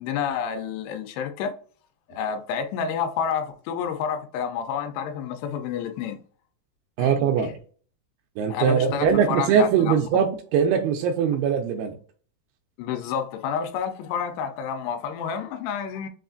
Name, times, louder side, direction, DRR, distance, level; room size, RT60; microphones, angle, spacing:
voice 1, 0.0-1.6 2.1-6.2 7.0-7.1 8.5-10.2 12.8-16.1, left 7 dB, 85° left, 2.6 m, -29 dB
voice 2, 7.0-7.5 8.4-12.0, right 7 dB, 85° right, 2.5 m, -21 dB
6.1 x 2.4 x 2.5 m
omnidirectional pair, 4.5 m